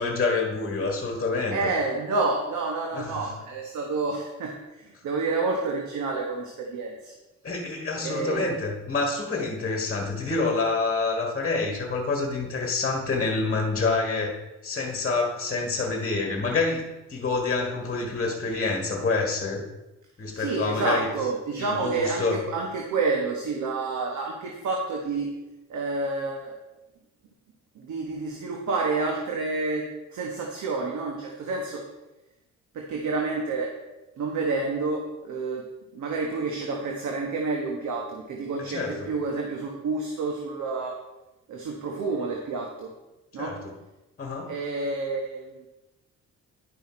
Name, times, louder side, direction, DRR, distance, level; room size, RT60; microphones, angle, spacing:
voice 1, 0.0-1.7 2.9-3.3 7.4-19.6 20.2-21.1 21.6-22.4 38.6-39.1 43.4-43.7 44.2-44.6, left 3 dB, 30° left, 2 dB, 1.4 m, -27 dB
voice 2, 1.5-7.1 8.0-8.5 20.3-25.3 25.7-26.6 27.7-29.8 30.1-31.8 32.7-33.7 34.2-35.7 35.9-40.9 41.5-42.9 43.3-43.6 44.5-45.7, right 3 dB, 70° right, 1 dB, 1.3 m, -29 dB
10.5 x 5.7 x 4.3 m, 1.0 s
cardioid pair, 90°, 30 cm